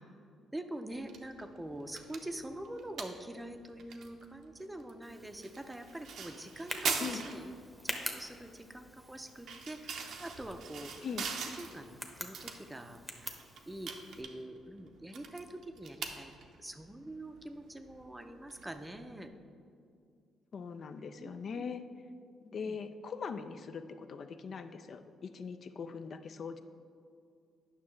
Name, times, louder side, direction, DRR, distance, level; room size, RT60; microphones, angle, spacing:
voice 1, 0.5-7.5 7.8-11.1 11.6-16.3 16.6-19.3 21.2-21.6 22.5-22.8, right 1 dB, 10° right, 6 dB, 0.5 m, -45 dB
sound 1, 0.9-19.3, right 6 dB, 75° right, 0.7 m, -44 dB
Tick, 5.0-14.2, left 1 dB, 5° left, 0.9 m, -45 dB
voice 2, 20.5-21.8 22.4-26.6, left 5 dB, 55° left, 9 dB, 0.3 m, -41 dB
9.1 x 5.9 x 3.2 m, 2.3 s
cardioid pair, 90°, 0 cm